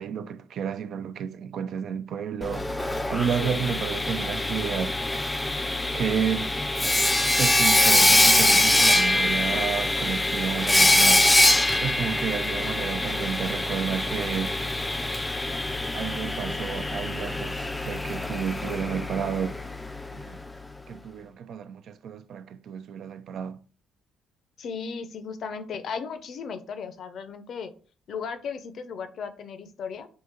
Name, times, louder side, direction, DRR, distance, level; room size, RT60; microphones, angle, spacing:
voice 1, 0.0-5.0 5.9-6.5 7.4-11.3 11.8-14.5 15.9-17.6 17.8-19.5 20.1-20.4 20.9-23.6, right 7 dB, 65° right, 0.3 m, -31 dB
Sawing, 2.4-20.2, left 1 dB, 10° left, 0.3 m, -24 dB
voice 2, 3.4-3.8 24.6-27.7 28.1-30.1, left 6 dB, 60° left, 0.6 m, -36 dB
3.7 x 2.7 x 4.3 m
cardioid pair, 85°, 0 cm